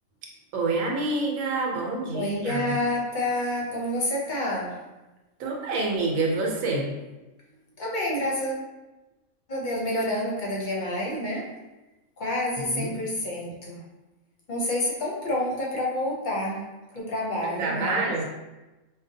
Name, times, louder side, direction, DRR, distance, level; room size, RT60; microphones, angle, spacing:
voice 1, 0.5-2.8 5.4-7.0 12.6-13.0 17.4-18.2, right 3 dB, 85° right, -1 dB, 1.1 m, -27 dB
voice 2, 2.1-4.8 7.8-8.6 9.5-11.5 12.2-13.8 14.5-16.6 16.9-18.1, left 1 dB, 45° left, -4 dB, 0.7 m, -28 dB
4.9 x 2.2 x 2.7 m, 1.1 s
omnidirectional pair, 1.4 m